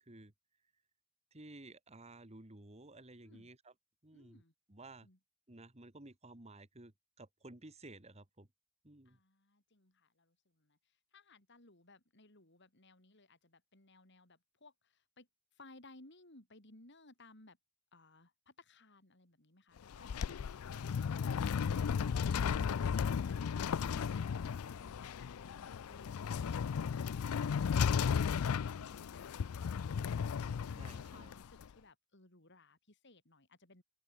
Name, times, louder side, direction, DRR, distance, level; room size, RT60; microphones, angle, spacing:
voice 1, 1.3-3.7 4.0-4.4 4.7-5.1 5.5-8.5 8.8-9.2 20.3-20.4 28.8-28.9 30.7-31.3, right 2 dB, 30° right, 1.9 m, -54 dB
voice 2, 4.1-4.5 5.0-5.2 9.0-15.3 15.5-17.6 17.9-21.6 21.9-30.0 30.4-33.8, left 2 dB, 55° left, 4.7 m, -61 dB
sound 1, 19.8-31.7, left 6 dB, 85° left, 0.4 m, -35 dB
open air
head